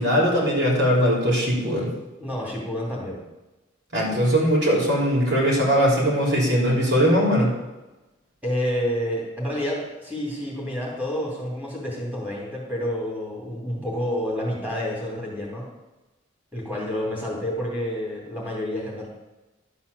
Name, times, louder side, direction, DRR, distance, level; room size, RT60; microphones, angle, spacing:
voice 1, 0.0-1.9 3.9-7.6, equal, 65° right, -4 dB, 3.5 m, -20 dB
voice 2, 2.2-3.2 8.4-15.7 16.5-19.1, equal, 10° right, -4 dB, 2.8 m, -29 dB
12.0 x 4.4 x 6.8 m, 1.1 s
head